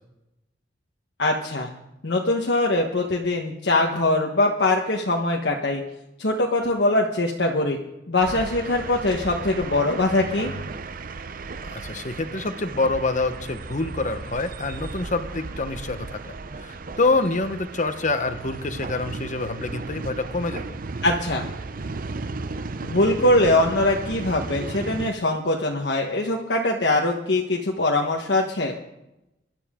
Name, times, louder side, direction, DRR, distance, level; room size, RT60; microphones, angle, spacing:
voice 1, 1.2-1.7 2.0-5.8 6.2-7.8 8.1-10.5 21.0-21.5 22.8-28.8, left 2 dB, 70° left, 0 dB, 1.3 m, -22 dB
sound 1, 8.2-25.1, right 3 dB, 50° right, 0.7 m, -35 dB
voice 2, 11.6-20.8, left 3 dB, 45° left, 9 dB, 1.1 m, -26 dB
23.0 x 12.0 x 3.8 m, 0.92 s
head